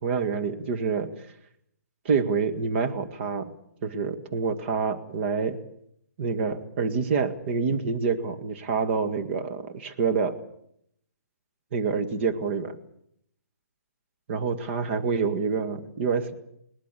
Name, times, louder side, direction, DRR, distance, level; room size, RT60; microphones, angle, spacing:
voice 1, 0.0-1.1 2.1-3.5 3.8-5.6 6.2-10.4 11.7-12.8 14.3-16.3, right 5 dB, 45° right, 7 dB, 2.0 m, -27 dB
21.5 x 18.5 x 8.4 m, 0.73 s
hypercardioid pair, 150°, 8 cm